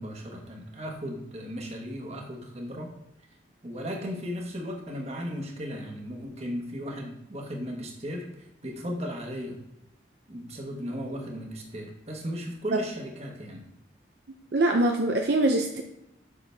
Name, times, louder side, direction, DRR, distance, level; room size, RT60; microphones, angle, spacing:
voice 1, 0.0-2.9 3.6-9.6 10.3-13.7, equal, 35° right, 1 dB, 1.3 m, -36 dB
voice 2, 14.5-15.8, right 2 dB, 60° right, 3 dB, 0.6 m, -23 dB
6.9 x 6.0 x 3.4 m, 0.84 s
head